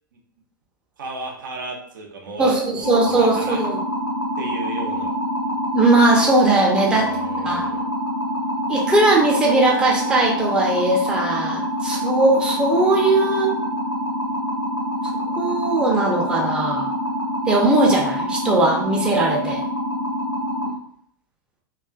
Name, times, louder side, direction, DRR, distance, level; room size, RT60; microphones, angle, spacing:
voice 1, 1.0-3.6 4.4-5.1 6.9-7.9, right 3 dB, 65° right, 0 dB, 0.6 m, -34 dB
voice 2, 2.4-3.8 5.7-7.1 7.4-7.6 8.7-13.5 15.4-16.9 17.5-19.6, right 2 dB, 10° right, -2 dB, 0.5 m, -19 dB
sound 1, 2.8-20.7, equal, 70° left, 0.8 m, -26 dB
2.4 x 2.3 x 2.3 m, 0.65 s
figure-of-eight pair, 95°, 11 cm